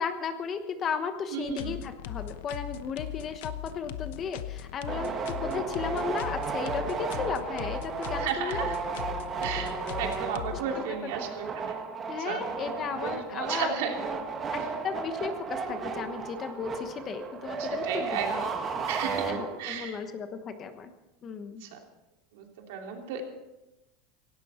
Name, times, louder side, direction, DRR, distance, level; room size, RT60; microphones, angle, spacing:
voice 1, 0.0-5.1 5.4-8.7 11.0-11.3 12.1-13.7 14.5-18.4 19.3-20.9 21.2-21.6, left 6 dB, 25° left, 8 dB, 1.1 m, -35 dB
voice 2, 1.3-1.8 8.2-8.8 9.4-12.4 12.9-14.3 17.6-18.5 18.9-20.0 21.6-21.8 22.3-23.2, right 7 dB, 70° right, 2 dB, 3.1 m, -34 dB
sound 1, 1.5-10.6, left 12 dB, 75° left, 0.9 m, -39 dB
sound 2, 4.9-19.9, right 5 dB, 20° right, 1.6 m, -34 dB
17.5 x 17.0 x 4.4 m, 0.99 s
supercardioid pair, 170°, 0 cm